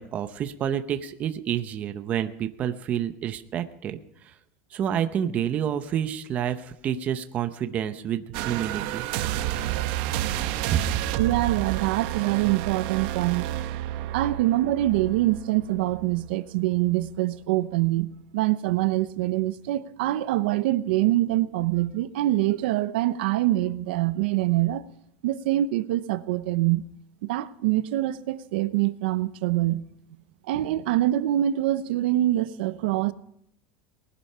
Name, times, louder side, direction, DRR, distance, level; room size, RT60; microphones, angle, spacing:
voice 1, 0.0-4.3 4.7-9.1 10.7-10.8, right 9 dB, 25° right, 0.7 m, -29 dB
sound 1, 8.3-16.5 16.9-17.1, right 13 dB, 55° right, 1.0 m, -30 dB
voice 2, 11.2-13.5 14.1-24.8 25.2-26.9 27.2-29.8 30.5-33.1, right 15 dB, 80° right, 0.8 m, -24 dB
19.5 x 11.0 x 5.6 m
supercardioid pair, 175°, 5 cm